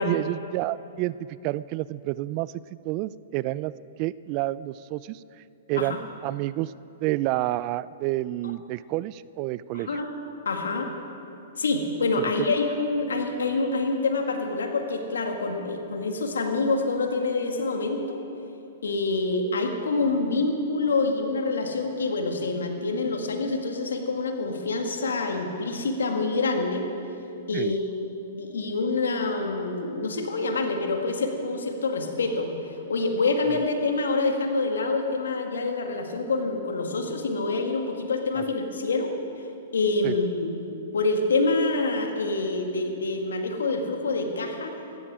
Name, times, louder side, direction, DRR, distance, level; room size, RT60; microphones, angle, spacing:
voice 1, 0.0-2.5 2.8-3.7 4.0-5.2 5.7-6.0 6.2-6.7 7.0-10.0 12.4-12.5 27.5-27.7 38.4-38.5 40.0-40.1, right 17 dB, 40° right, 18 dB, 0.3 m, -29 dB
voice 2, 9.7-10.1 10.5-10.9 11.6-18.2 18.8-26.9 27.5-27.8 28.3-39.1 39.7-40.5 40.9-44.7, left 3 dB, 85° left, 4 dB, 1.9 m, -26 dB
15.5 x 13.5 x 4.9 m, 2.8 s
hypercardioid pair, 125°, 0 cm